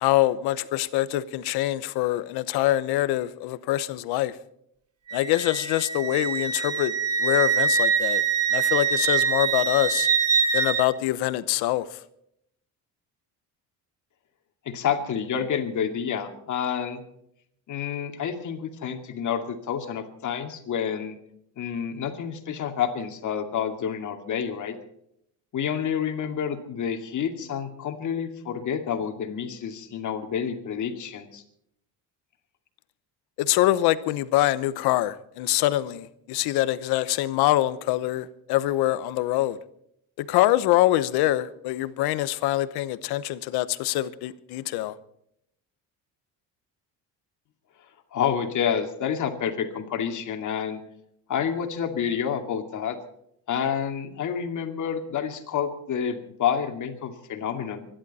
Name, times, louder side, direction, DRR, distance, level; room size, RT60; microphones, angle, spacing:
voice 1, 0.0-4.4 5.1-6.9 7.2-8.2 8.5-10.1 10.5-12.0 33.4-39.6 40.2-44.9, left 15 dB, 85° left, 1.0 m, -24 dB
Wind instrument woodwind instrument, 5.1-10.9, right 6 dB, 40° right, 1.7 m, -24 dB
voice 2, 14.7-17.0 17.7-21.2 21.6-24.8 25.5-31.4 48.1-50.8 51.3-53.0 53.5-57.9, left 8 dB, 50° left, 2.4 m, -29 dB
25.5 x 11.5 x 4.2 m
cardioid pair, 125°, 37 cm